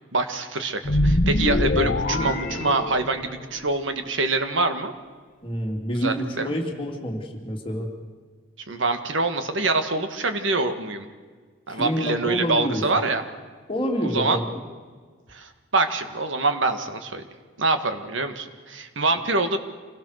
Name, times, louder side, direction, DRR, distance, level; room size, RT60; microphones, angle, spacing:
voice 1, 0.1-4.9 6.0-6.5 8.7-11.1 11.7-13.2 14.0-14.4 15.3-17.2 17.6-19.6, right 3 dB, 70° right, 8 dB, 1.8 m, -25 dB
sound 1, 0.8-3.4, left 1 dB, 45° left, 1.0 m, -23 dB
voice 2, 5.4-7.9 11.7-12.8 13.7-14.6, equal, 25° left, 1 dB, 2.9 m, -28 dB
26.5 x 17.5 x 6.5 m, 1.5 s
head